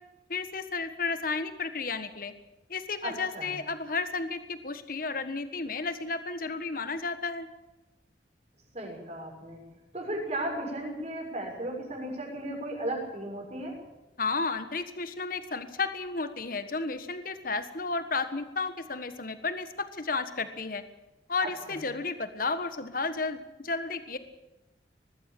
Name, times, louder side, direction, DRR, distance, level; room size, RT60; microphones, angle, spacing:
voice 1, 0.3-2.3 2.7-7.5 14.2-20.8 21.3-24.2, left 4 dB, 50° left, 10 dB, 1.5 m, -32 dB
voice 2, 3.0-3.6 8.7-9.6 9.9-13.8 21.4-21.8, right 1 dB, 35° right, 1 dB, 6.5 m, -35 dB
20.5 x 15.0 x 8.6 m, 1.0 s
head